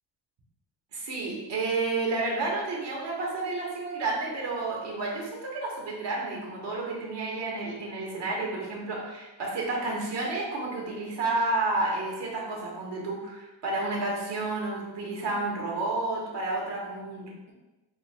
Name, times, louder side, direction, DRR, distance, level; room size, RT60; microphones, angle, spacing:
voice 1, 0.9-17.5, right 2 dB, 70° right, -3 dB, 1.3 m, -31 dB
5.1 x 2.1 x 3.3 m, 1.1 s
cardioid pair, 75°, 44 cm